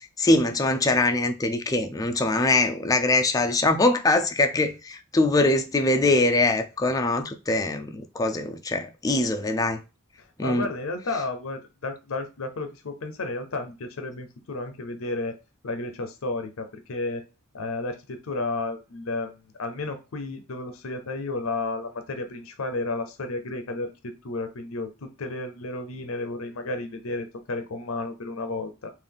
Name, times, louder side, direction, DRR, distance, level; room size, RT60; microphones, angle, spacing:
voice 1, 0.2-9.8 10.4-10.6, left 2 dB, 15° left, 0.4 m, -23 dB
voice 2, 10.2-15.4 15.6-17.2 17.5-28.9, left 2 dB, 65° left, 0.6 m, -32 dB
3.7 x 2.5 x 3.5 m
head